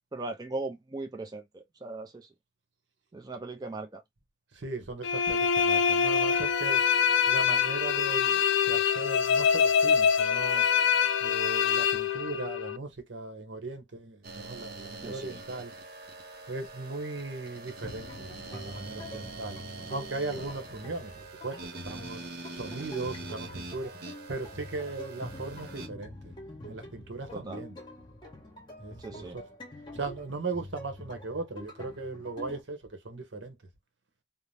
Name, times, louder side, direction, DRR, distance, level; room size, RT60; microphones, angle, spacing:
voice 1, 0.1-2.3 3.1-4.0 15.0-15.4 27.3-27.6 29.0-29.4, right 2 dB, 20° right, 0.4 m, -38 dB
voice 2, 4.5-6.8 7.3-10.6 11.2-15.7 16.5-19.6 19.9-22.2 22.5-23.9 24.3-26.3 26.7-27.8 28.8-29.4 29.9-33.6, right 3 dB, 90° right, 0.8 m, -38 dB
sound 1, 5.0-12.8, left 7 dB, 90° left, 0.3 m, -25 dB
sound 2, 14.2-25.9, right 3 dB, 60° right, 0.7 m, -44 dB
sound 3, 17.8-32.6, left 1 dB, 25° left, 0.8 m, -46 dB
2.6 x 2.0 x 3.2 m
head